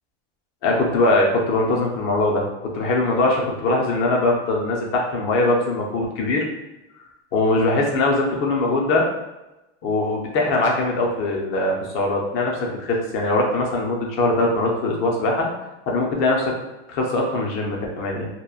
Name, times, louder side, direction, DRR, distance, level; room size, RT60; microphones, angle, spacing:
voice 1, 0.6-6.5 7.3-9.1 9.8-15.5 15.9-16.5 16.9-18.3, left 2 dB, 35° left, -1 dB, 0.6 m, -21 dB
2.9 x 2.2 x 2.4 m, 0.98 s
supercardioid pair, 140°, 38 cm